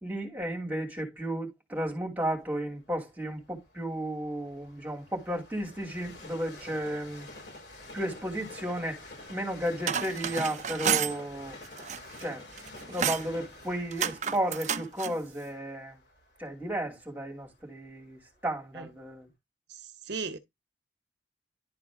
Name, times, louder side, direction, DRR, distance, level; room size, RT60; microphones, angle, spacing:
voice 1, 0.0-7.3 7.9-9.0 9.3-11.6 12.2-12.4 12.8-16.0 16.4-19.3, right 1 dB, 10° right, 2.7 m, -33 dB
Train, 2.4-18.4 19.0-19.1, left 2 dB, 70° left, 4.9 m, -49 dB
sound 1, 9.7-11.2 11.7-12.3 12.6-13.3 13.9-15.2, right 8 dB, 40° right, 0.6 m, -30 dB
voice 2, 19.7-20.4, right 4 dB, 70° right, 0.9 m, -37 dB
11.5 x 4.0 x 3.6 m
head